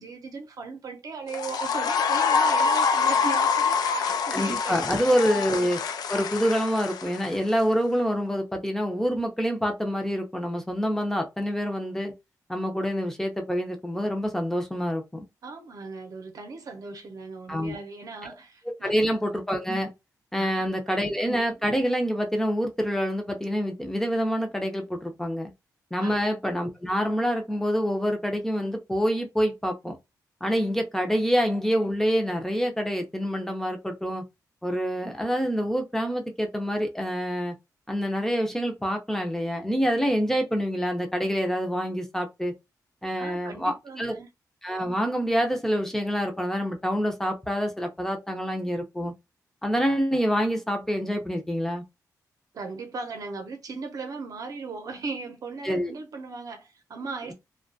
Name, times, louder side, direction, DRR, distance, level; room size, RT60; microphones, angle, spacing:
voice 1, 0.0-5.0 15.4-19.1 20.3-21.1 26.0-26.3 43.2-44.3 52.5-57.3, right 4 dB, 60° right, 0.7 m, -38 dB
sound 1, 1.3-7.6, left 5 dB, 75° left, 0.3 m, -25 dB
voice 2, 4.3-5.8 6.1-12.1 12.5-15.3 17.5-17.7 18.8-19.9 20.3-25.5 25.9-30.0 30.4-34.2 34.6-37.5 37.9-42.5 43.0-44.2 44.6-49.1 49.6-51.8 55.6-55.9, equal, 5° left, 0.5 m, -26 dB
2.3 x 2.2 x 2.5 m
cardioid pair, 100°, 7 cm